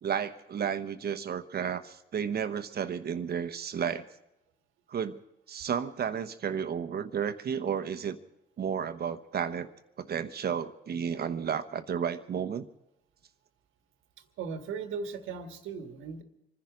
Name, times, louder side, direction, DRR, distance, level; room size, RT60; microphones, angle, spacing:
voice 1, 0.0-4.1 4.9-5.2 5.5-8.2 8.6-9.7 10.0-12.7, right 7 dB, 55° right, 10 dB, 1.0 m, -32 dB
voice 2, 14.2-16.2, right 5 dB, 90° right, 7 dB, 1.6 m, -38 dB
25.5 x 10.5 x 5.1 m, 0.89 s
cardioid pair, 90°, 20 cm